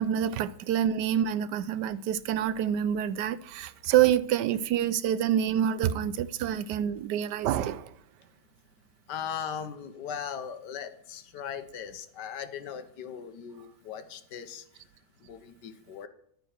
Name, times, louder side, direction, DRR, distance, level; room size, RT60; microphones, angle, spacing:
voice 1, 0.0-7.9, right 10 dB, 75° right, 1.1 m, -27 dB
voice 2, 9.1-14.8 15.2-16.1, left 8 dB, 75° left, 1.5 m, -39 dB
11.0 x 9.3 x 4.4 m
omnidirectional pair, 1.9 m